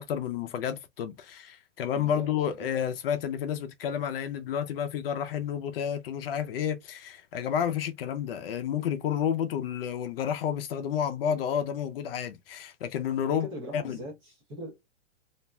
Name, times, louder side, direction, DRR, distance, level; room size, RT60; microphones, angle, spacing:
voice 1, 0.0-13.5 13.7-14.0, left 8 dB, 55° left, 0.6 m, -30 dB
voice 2, 2.0-2.3 2.6-2.7 13.3-14.9, equal, 15° right, 0.5 m, -40 dB
2.5 x 2.0 x 3.2 m
hypercardioid pair, 160°, 35 cm